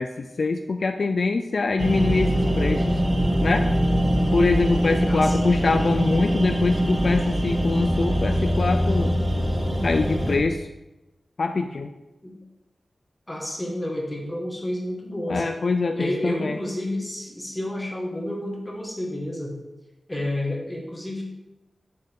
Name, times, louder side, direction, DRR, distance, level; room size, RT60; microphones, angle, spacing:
voice 1, 0.0-3.0 3.4-3.7 4.3-9.1 9.8-10.7 11.4-11.9 15.3-16.6, left 3 dB, 60° left, 7 dB, 0.3 m, -24 dB
sound 1, 1.8-10.4, equal, 10° right, 1.5 m, -22 dB
voice 2, 5.0-5.3 12.2-12.4 13.3-15.4 16.0-19.5 20.1-21.2, left 1 dB, 10° left, -2 dB, 1.6 m, -30 dB
6.6 x 6.5 x 3.6 m, 0.99 s
wide cardioid pair, 115°, 0 cm